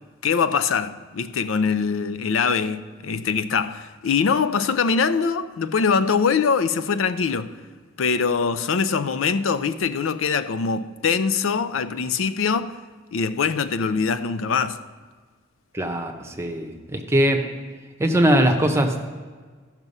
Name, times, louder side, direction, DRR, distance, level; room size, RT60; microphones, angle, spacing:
voice 1, 0.2-7.6 8.0-12.8 13.1-14.8, left 5 dB, 85° left, 0.5 m, -23 dB
voice 2, 15.7-17.4 18.0-19.0, right 1 dB, 15° right, 0.8 m, -21 dB
14.0 x 6.0 x 5.4 m
head